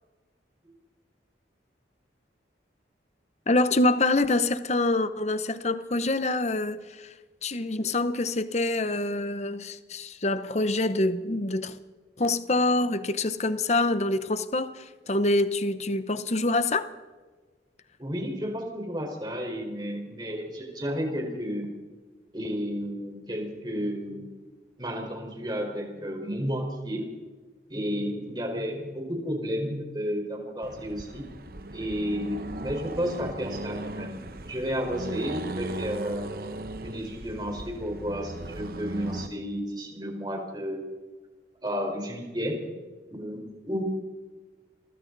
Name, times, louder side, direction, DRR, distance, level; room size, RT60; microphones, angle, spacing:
voice 1, 3.5-7.1 7.4-11.8 12.2-16.9, left 2 dB, 40° left, 0.9 m, -26 dB
voice 2, 18.0-21.7 22.3-24.4 24.8-27.1 27.7-31.3 31.7-36.3 36.8-41.0 41.6-42.8 43.1-43.8, equal, 25° right, 4.6 m, -32 dB
Accelerating revving vroom, 30.6-39.3, right 2 dB, 55° right, 1.1 m, -38 dB
30.0 x 24.0 x 4.1 m
head